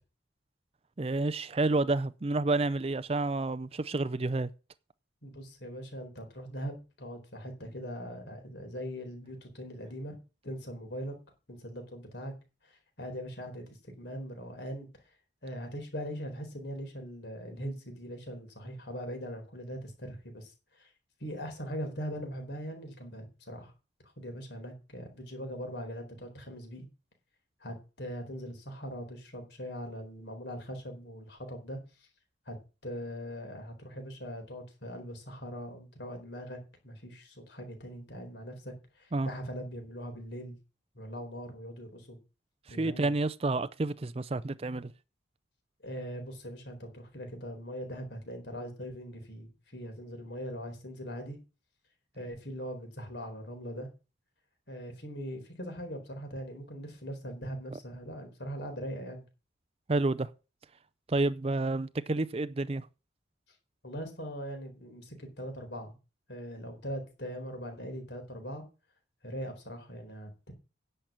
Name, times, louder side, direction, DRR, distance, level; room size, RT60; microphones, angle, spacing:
voice 1, 1.0-4.5 39.1-39.3 42.7-44.9 57.7-57.8 59.9-60.3 61.1-62.9, right 2 dB, 30° right, 0.5 m, -29 dB
voice 2, 5.2-10.2 10.4-11.2 11.5-12.3 12.6-15.0 15.4-20.9 21.2-23.7 24.2-26.8 27.6-32.1 32.5-32.6 32.8-40.6 40.9-42.2 42.7-43.1 45.8-51.4 52.1-53.9 54.7-59.2 63.8-65.9 66.3-68.6 69.2-70.5, equal, 60° left, 4.3 m, -41 dB
10.5 x 6.6 x 7.4 m
head